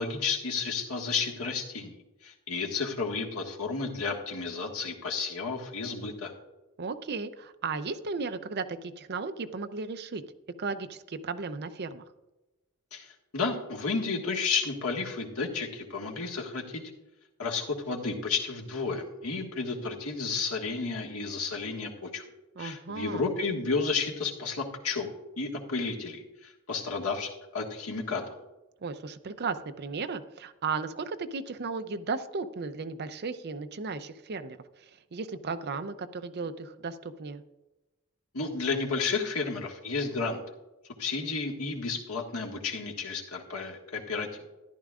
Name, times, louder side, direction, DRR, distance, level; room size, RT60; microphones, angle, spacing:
voice 1, 0.0-2.0 2.2-6.3 12.9-16.8 17.4-22.2 22.6-25.1 25.4-28.2 38.3-40.4 41.0-44.3, left 4 dB, 80° left, 0 dB, 1.7 m, -32 dB
voice 2, 6.8-10.2 10.6-12.0 22.6-23.2 28.8-37.4, right 4 dB, 50° right, 11 dB, 0.6 m, -35 dB
14.0 x 11.0 x 2.4 m, 1.0 s
head